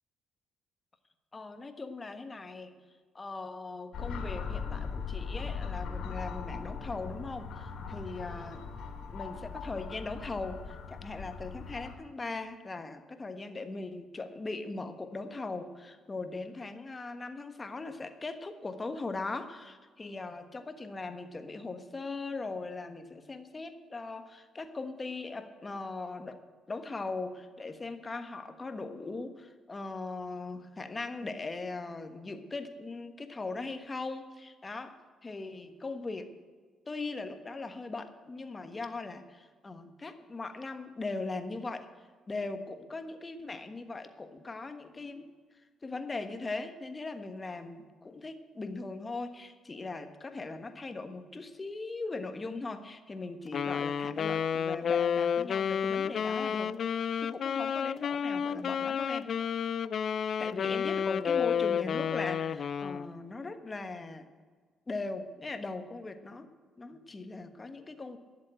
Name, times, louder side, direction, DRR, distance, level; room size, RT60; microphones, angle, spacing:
voice 1, 1.3-2.7 3.1-8.6 9.1-26.4 26.7-35.0 35.2-36.3 36.9-41.9 42.3-45.3 45.8-59.3 60.4-64.2 64.9-66.5 66.8-68.2, left 3 dB, 25° left, 8 dB, 1.3 m, -39 dB
sound 1, 3.9-11.9, left 5 dB, 75° left, 2.5 m, -39 dB
Wind instrument woodwind instrument, 53.5-63.1, left 7 dB, 55° left, 0.4 m, -31 dB
11.0 x 7.5 x 8.9 m, 1.5 s
cardioid pair, 90°, 0 cm